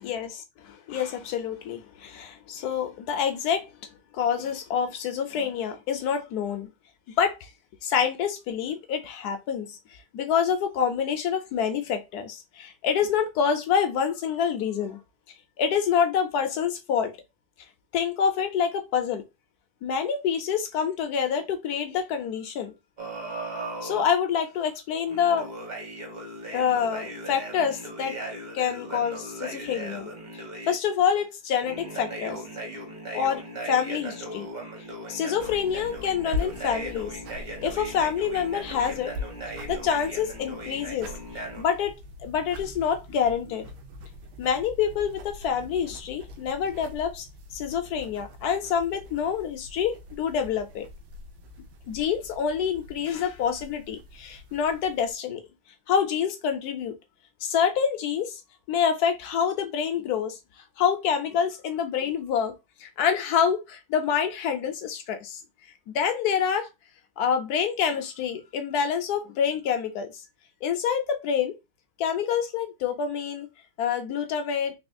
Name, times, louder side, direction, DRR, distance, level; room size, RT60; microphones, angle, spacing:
voice 1, 0.9-3.7 4.1-6.7 7.2-7.5 7.8-15.0 15.6-17.1 17.9-19.2 19.8-22.7 23.8-25.5 26.5-28.1 28.5-30.1 30.7-32.4 33.1-34.5 35.1-37.1 37.6-39.1 39.7-41.1 41.6-41.9 42.2-43.7 44.4-47.3 47.5-50.9 51.9-55.4 55.9-56.9 57.4-58.4 58.7-60.4 60.8-62.5 62.8-65.4 65.9-66.7 67.2-70.1 70.6-71.6 72.0-73.5 73.8-74.7, left 7 dB, 70° left, 0.9 m, -27 dB
sound 1, 23.0-24.1 25.1-30.7 31.6-41.6, right 1 dB, 40° right, 0.7 m, -38 dB
sound 2, 35.4-55.2, left 2 dB, 75° right, 1.5 m, -42 dB
4.1 x 3.0 x 2.6 m
omnidirectional pair, 2.4 m